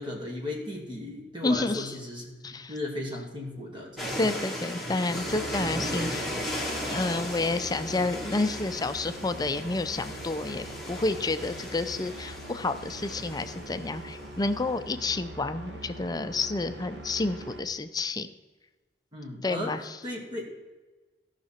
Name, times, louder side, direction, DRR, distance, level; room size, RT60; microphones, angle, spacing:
voice 1, 0.0-2.3 2.7-4.2 19.1-19.8 20.0-20.4, left 1 dB, 25° right, -2 dB, 2.4 m, -36 dB
voice 2, 1.4-2.0 2.4-2.7 4.2-6.2 6.5-18.3 19.4-20.0, left 3 dB, 20° left, 10 dB, 0.5 m, -30 dB
sound 1, 4.0-14.2, equal, ahead, 2.0 m, -36 dB
sound 2, 5.1-17.6, right 1 dB, 80° right, 1.4 m, -42 dB
16.5 x 5.9 x 4.4 m, 1.2 s
head